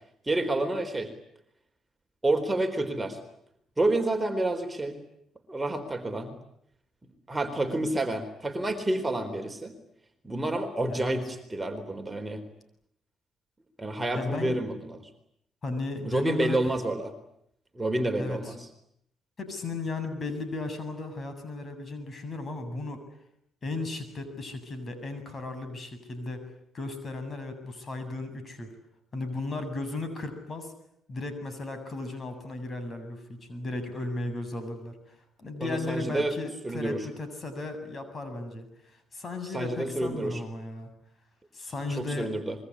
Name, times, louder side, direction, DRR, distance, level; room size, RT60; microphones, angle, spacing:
voice 1, 0.3-1.1 2.2-3.2 3.8-5.0 5.5-6.4 7.3-9.7 10.2-12.4 13.8-15.1 16.0-17.1 17.7-18.7 35.6-36.4 36.6-37.0 39.5-40.4 42.0-42.6, right 2 dB, 15° right, 6 dB, 4.1 m, -29 dB
voice 2, 14.1-14.6 15.6-16.6 18.2-18.5 19.4-23.0 23.6-26.5 26.7-28.7 29.1-30.7 31.1-40.9 41.5-42.3, left 2 dB, 40° left, 9 dB, 7.5 m, -35 dB
25.5 x 23.0 x 10.0 m, 0.74 s
supercardioid pair, 75°, 0 cm